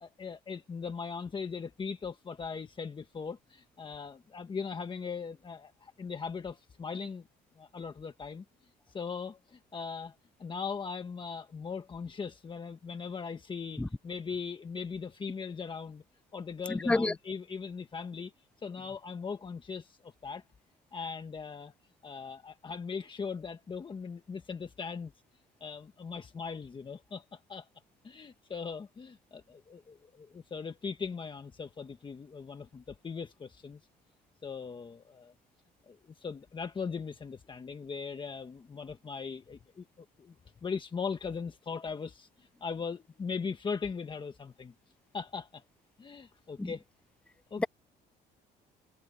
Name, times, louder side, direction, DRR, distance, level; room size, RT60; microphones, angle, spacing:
voice 1, 0.0-7.3 7.6-8.4 8.9-16.0 16.3-18.3 18.6-20.4 20.9-21.7 22.0-25.1 25.6-27.7 28.0-33.8 34.4-35.3 35.9-40.3 40.6-44.7 45.1-45.6 46.0-46.8 47.5-47.7, left 5 dB, 30° left, 1.5 m, -39 dB
voice 2, 13.8-13.9 16.9-17.1 46.6-46.7 47.6-47.7, left 2 dB, 5° left, 0.5 m, -27 dB
cardioid pair, 110°, 17 cm